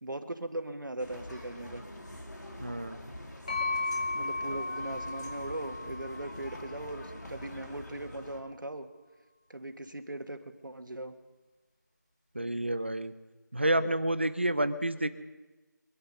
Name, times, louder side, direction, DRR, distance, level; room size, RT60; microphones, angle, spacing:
voice 1, 0.0-1.8 4.1-8.9 9.5-11.2, right 1 dB, 85° right, 7 dB, 1.7 m, -39 dB
sound 1, 1.0-8.4, left 1 dB, 65° left, 2.6 m, -45 dB
voice 2, 2.6-3.0 12.3-13.1 13.5-15.1, right 1 dB, 35° right, 12 dB, 0.7 m, -29 dB
Jack's wine glass, 3.5-7.2, left 3 dB, 20° left, 2.5 m, -35 dB
23.5 x 10.5 x 5.4 m, 1.2 s
figure-of-eight pair, 180°, 10 cm